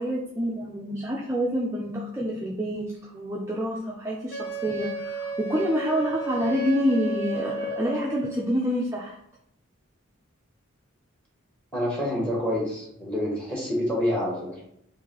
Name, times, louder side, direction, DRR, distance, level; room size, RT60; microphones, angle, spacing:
voice 1, 0.0-9.2, equal, 15° right, -3 dB, 0.3 m, -27 dB
Wind instrument woodwind instrument, 4.3-8.4, right 1 dB, 50° left, 0.6 m, -33 dB
voice 2, 11.7-14.6, left 1 dB, 5° left, -4 dB, 1.1 m, -27 dB
3.1 x 2.5 x 3.7 m, 0.74 s
head